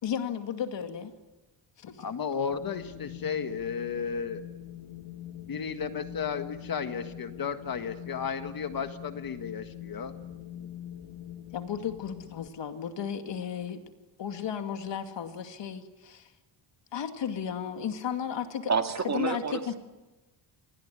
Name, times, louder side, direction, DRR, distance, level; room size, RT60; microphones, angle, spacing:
voice 1, 0.0-1.1 1.8-2.1 11.5-13.8 14.2-16.3 16.9-18.7 19.0-19.7, left 8 dB, 60° left, 7 dB, 2.5 m, -34 dB
voice 2, 2.0-4.4 5.5-10.1, left 6 dB, 45° left, 8 dB, 1.7 m, -33 dB
Wind, 2.5-12.5, left 12 dB, 80° left, 1.9 m, -44 dB
voice 3, 18.7-19.8, right 5 dB, 35° right, 6 dB, 2.0 m, -29 dB
27.0 x 21.0 x 9.9 m, 1.1 s
cardioid pair, 140°, 50 cm